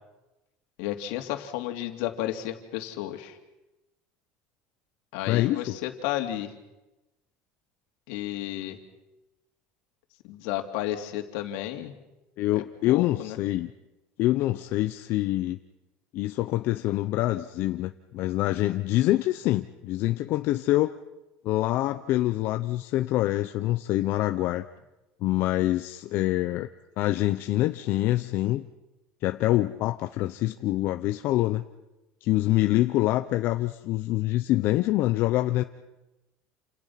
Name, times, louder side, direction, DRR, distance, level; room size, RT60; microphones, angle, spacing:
voice 1, 0.8-3.4 5.1-6.5 8.1-8.8 10.2-11.9 12.6-13.4, left 13 dB, 80° left, 5 dB, 3.0 m, -32 dB
voice 2, 5.3-5.8 12.4-13.7 14.2-15.6 16.1-21.0 21.4-24.6 25.2-26.7 27.0-28.7 29.2-31.6 32.2-35.6, left 16 dB, 55° left, 8 dB, 0.9 m, -25 dB
29.0 x 27.5 x 5.9 m, 1.0 s
cardioid pair, 140°, 4 cm